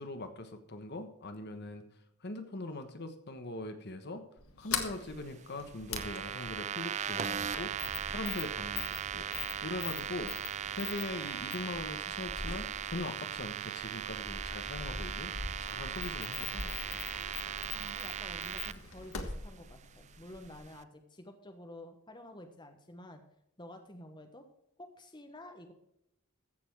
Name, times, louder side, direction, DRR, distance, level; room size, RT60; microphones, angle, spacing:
voice 1, 0.0-1.8 2.2-4.2 4.6-7.7 8.1-9.2 9.6-10.3 10.7-15.3 15.6-17.0, left 2 dB, 50° left, 8 dB, 1.2 m, -41 dB
Sliding door, 4.4-20.7, left 5 dB, 70° left, 1.7 m, -43 dB
sound 1, 6.0-18.7, right 8 dB, 30° right, 0.4 m, -38 dB
voice 2, 17.7-23.2 23.6-24.4 24.8-25.7, left 1 dB, 20° left, 5 dB, 1.1 m, -50 dB
14.5 x 7.0 x 4.7 m, 0.81 s
head